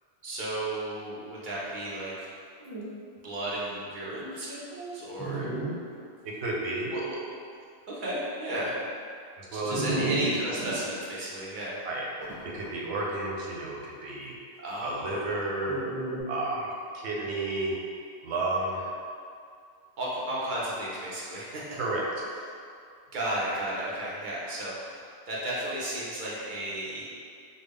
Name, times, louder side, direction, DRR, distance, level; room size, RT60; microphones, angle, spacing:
voice 1, 0.2-2.3 3.2-5.5 5.9-6.0 6.9-7.2 7.9-8.8 9.5-11.8 14.6-15.3 17.2-17.3 20.0-21.8 23.1-27.0, right 1 dB, 50° right, -7 dB, 0.8 m, -34 dB
Dog, 2.6-2.9 3.5-3.6 4.3-4.4 5.2-5.7 6.3-6.4 9.7-10.7 12.2-12.7 15.6-16.2, right 2 dB, 15° right, 1.4 m, -32 dB
voice 2, 6.2-6.9 9.4-9.8 11.8-12.1 12.4-14.4 14.8-15.8 16.3-17.8 18.2-18.9 21.8-22.3, right 2 dB, 85° right, -3 dB, 0.9 m, -32 dB
3.7 x 2.0 x 3.5 m, 2.3 s
omnidirectional pair, 1.1 m